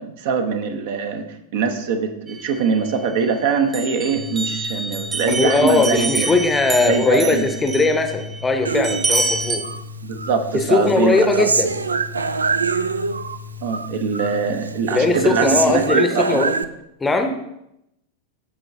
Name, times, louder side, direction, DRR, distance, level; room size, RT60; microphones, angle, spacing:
voice 1, 0.0-6.3 6.9-7.5 10.0-11.5 13.6-16.7, right 5 dB, 50° right, 7 dB, 0.7 m, -23 dB
sound 1, 2.3-3.3 3.7-9.6, right 3 dB, 25° right, 0.9 m, -27 dB
sound 2, 4.1-15.9, left 6 dB, 70° left, 1.1 m, -37 dB
voice 2, 5.3-9.6 10.5-11.7 14.9-16.5 17.0-17.4, left 3 dB, 15° left, 6 dB, 0.7 m, -19 dB
Human voice, 8.6-9.8 10.2-13.4 13.7-14.4 14.6-16.6, right 4 dB, 75° right, 0.3 m, -25 dB
13.5 x 4.6 x 2.7 m, 0.82 s
figure-of-eight pair, 90°, 0 cm